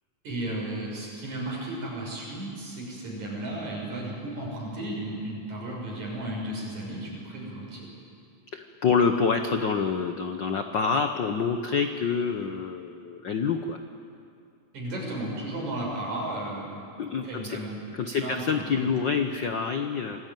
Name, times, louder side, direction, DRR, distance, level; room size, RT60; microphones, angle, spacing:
voice 1, 0.2-7.9 14.7-16.8 17.2-17.8 18.2-18.9, right 1 dB, 70° right, -2 dB, 7.8 m, -34 dB
voice 2, 8.5-13.8 17.0-17.6 17.9-20.2, left 5 dB, 70° left, 6 dB, 1.0 m, -27 dB
27.0 x 19.0 x 9.2 m, 2.4 s
omnidirectional pair, 3.5 m